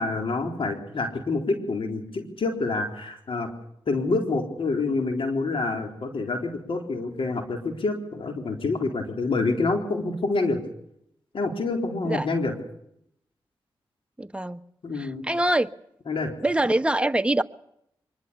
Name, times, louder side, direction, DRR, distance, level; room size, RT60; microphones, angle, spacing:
voice 1, 0.0-3.5 3.9-10.6 11.3-12.6 14.8-15.3 16.1-16.3, left 3 dB, 65° left, 3 dB, 4.1 m, -27 dB
voice 2, 14.2-14.6 14.9-15.7 16.4-17.4, right 1 dB, 10° right, 9 dB, 1.3 m, -24 dB
24.0 x 21.5 x 7.1 m, 0.75 s
supercardioid pair, 40°, 10 cm